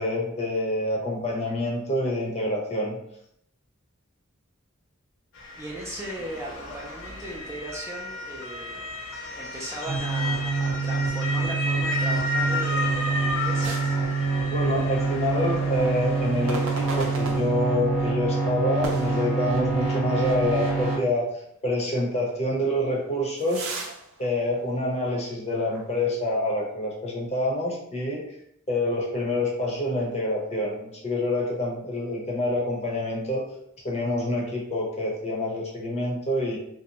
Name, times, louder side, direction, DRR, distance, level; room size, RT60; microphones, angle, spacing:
voice 1, 0.0-3.0 14.5-21.3 21.6-23.7 24.2-28.2 28.7-33.5 33.8-36.6, left 1 dB, 35° left, -2 dB, 0.7 m, -27 dB
Motor vehicle (road) / Siren, 5.4-17.2, left 2 dB, 70° left, 0.5 m, -33 dB
voice 2, 5.6-8.9 9.3-14.3, right 1 dB, 15° right, -3 dB, 0.3 m, -38 dB
sound 1, 9.9-21.0, right 4 dB, 90° left, 1.2 m, -26 dB
sound 2, 13.6-14.8 15.1-15.3 16.5-18.0 18.8-20.0 20.4-20.5 21.2-21.3 22.6-25.3 25.7-25.9, right 3 dB, 80° right, 0.5 m, -38 dB
2.6 x 2.1 x 2.8 m, 0.73 s
head